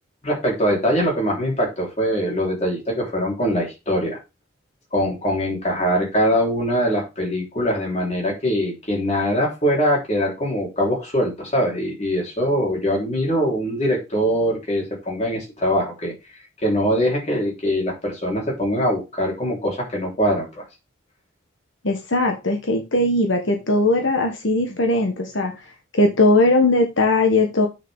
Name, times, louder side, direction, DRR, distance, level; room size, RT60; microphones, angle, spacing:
voice 1, 0.2-4.2 4.9-16.1 16.6-20.6, equal, 35° left, -1 dB, 3.6 m, -22 dB
voice 2, 21.8-25.5 25.9-27.7, left 2 dB, 75° left, 3 dB, 1.4 m, -19 dB
8.7 x 6.5 x 3.6 m, 0.26 s
head